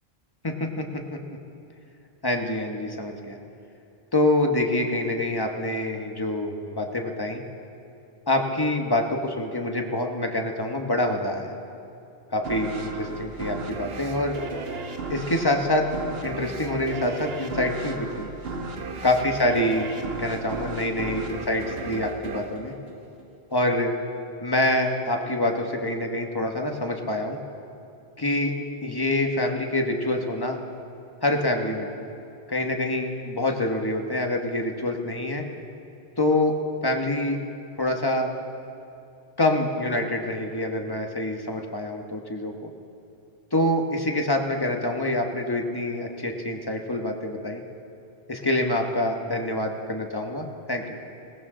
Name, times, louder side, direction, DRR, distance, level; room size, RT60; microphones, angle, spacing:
voice 1, 0.4-0.8 1.1-1.2 2.2-3.4 4.1-7.4 8.3-11.5 12.3-14.4 15.1-15.8 16.2-18.3 19.0-19.9 20.2-22.7 23.5-23.9 24.4-27.4 28.2-28.5 28.8-30.6 31.2-31.9 32.5-35.4 36.2-36.6 36.8-37.4 37.8-38.3 39.4-42.7 43.5-47.6 48.3-50.8, left 1 dB, 20° left, 2 dB, 1.2 m, -26 dB
sound 1, 12.4-23.6, right 3 dB, 70° right, 1.2 m, -35 dB
20.5 x 17.5 x 3.8 m, 2.7 s
omnidirectional pair, 1.1 m